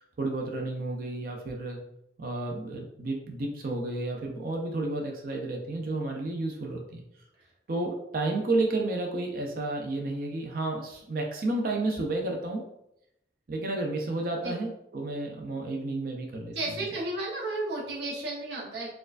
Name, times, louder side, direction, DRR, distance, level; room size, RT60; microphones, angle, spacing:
voice 1, 0.0-1.8 2.2-7.0 7.7-12.7 13.5-16.5, right 2 dB, 50° right, 1 dB, 0.5 m, -31 dB
voice 2, 16.5-18.9, right 2 dB, 65° right, -5 dB, 1.0 m, -33 dB
4.3 x 2.3 x 2.4 m, 0.80 s
head